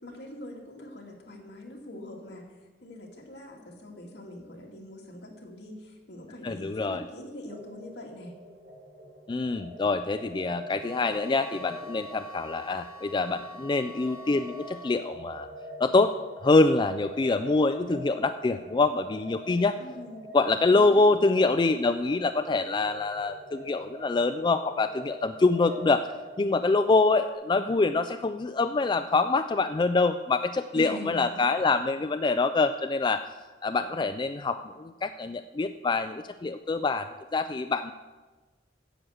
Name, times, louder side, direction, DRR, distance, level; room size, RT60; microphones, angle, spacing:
voice 1, 0.0-2.5 2.8-8.4 19.8-20.2 20.7-21.1 30.7-31.3, left 1 dB, 70° left, 0 dB, 2.2 m, -43 dB
voice 2, 6.4-7.0 9.3-15.5 15.8-16.1 16.4-19.8 20.3-26.1 26.4-33.3 33.6-37.9, left 3 dB, 25° left, 9 dB, 0.3 m, -25 dB
sound 1, 7.4-27.3, equal, 80° right, 3.3 m, -44 dB
sound 2, 10.8-15.0, left 1 dB, 15° right, 2.6 m, -46 dB
10.0 x 7.5 x 7.9 m, 1.3 s
head